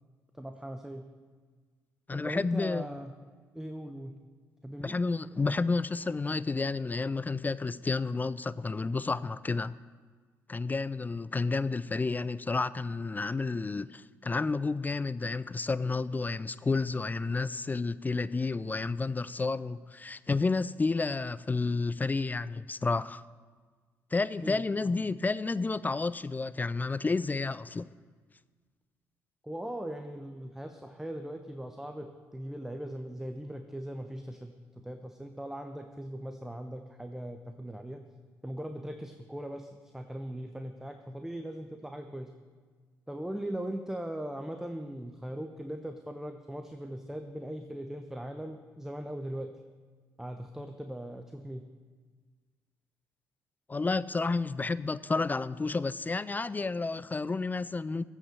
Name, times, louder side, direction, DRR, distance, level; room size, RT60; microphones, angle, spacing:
voice 1, 0.4-1.1 2.1-3.1 3.5-4.2 4.6-5.0 24.4-25.0 29.4-38.0 38.4-42.3 43.1-49.5 50.2-51.6, right 1 dB, 5° right, 0.8 m, -39 dB
voice 2, 2.1-2.8 4.8-9.8 10.5-23.2 24.1-27.9 53.7-58.0, left 3 dB, 20° left, 0.4 m, -31 dB
14.0 x 5.7 x 7.0 m
figure-of-eight pair, 45°, 8 cm